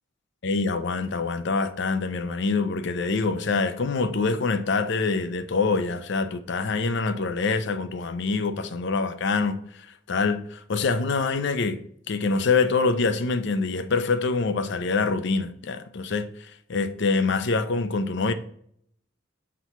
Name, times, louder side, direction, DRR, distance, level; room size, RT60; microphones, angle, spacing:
voice 1, 0.4-11.8 12.1-18.3, left 4 dB, 65° left, 0.6 m, -25 dB
6.1 x 3.0 x 5.5 m
head